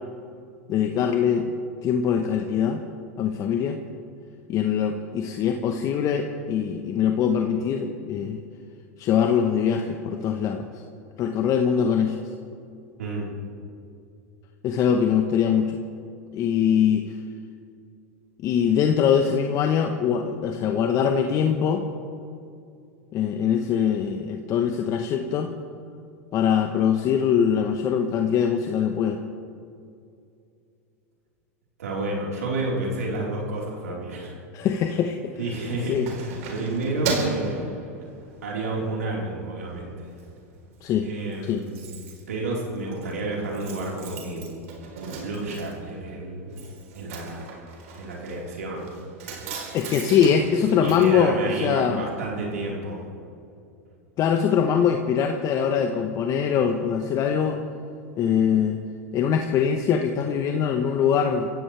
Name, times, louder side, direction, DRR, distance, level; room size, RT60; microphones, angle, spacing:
voice 1, 0.7-1.5 1.8-2.8 3.2-3.8 4.5-8.4 9.0-10.7 11.2-12.2 14.6-15.8 16.3-17.1 18.4-21.8 23.1-25.5 26.3-29.2 34.5-35.3 35.9-36.1 40.8-41.1 41.4-41.6 49.7-52.1 54.2-57.6 58.2-58.8 59.1-61.5, left 8 dB, 45° left, 4 dB, 1.1 m, -22 dB
voice 2, 13.0-13.3 31.8-34.4 35.4-37.6 38.4-40.1 41.0-41.8 42.3-44.5 45.0-46.5 46.9-47.5 47.9-48.9 50.8-53.1, right 2 dB, 85° right, -3 dB, 4.3 m, -30 dB
Keys jangling, 35.4-38.5 39.0-39.2 39.6-40.3 40.5-40.6 40.9-41.0 41.2-52.0 52.3-52.4, right 4 dB, 70° right, 3.9 m, -36 dB
26.0 x 15.5 x 3.4 m, 2.5 s
hypercardioid pair, 100°, 8 cm